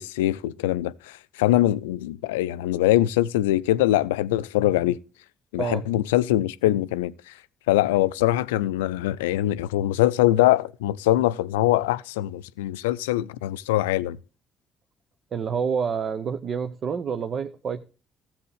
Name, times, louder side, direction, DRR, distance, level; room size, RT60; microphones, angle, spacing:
voice 1, 0.0-5.0 5.5-7.1 7.7-14.2, left 15 dB, 75° left, 0.4 m, -23 dB
voice 2, 15.3-17.8, right 6 dB, 50° right, 0.7 m, -28 dB
16.5 x 7.3 x 3.2 m
figure-of-eight pair, 50°, 0 cm